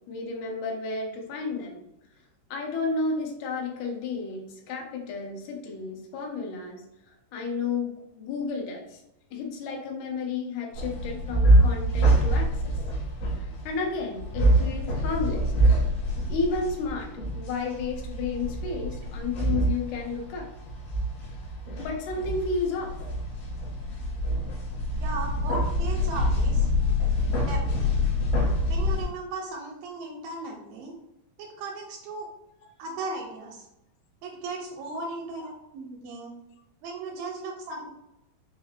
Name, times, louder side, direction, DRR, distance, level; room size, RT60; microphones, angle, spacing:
voice 1, 0.1-1.8 2.5-6.8 7.3-9.0 9.3-12.7 13.4-15.5 16.3-17.1 17.3-20.5 21.8-22.9 35.4-35.5, left 4 dB, 90° left, 0 dB, 2.8 m, -32 dB
sound 1, 10.7-29.0, equal, 65° left, 2.8 m, -25 dB
voice 2, 25.0-26.7 27.4-27.9 28.7-30.9 31.4-32.3 32.8-33.7 34.2-36.3 36.8-37.9, right 2 dB, 80° right, 1 dB, 2.2 m, -36 dB
6.1 x 2.8 x 2.4 m, 0.86 s
omnidirectional pair, 4.3 m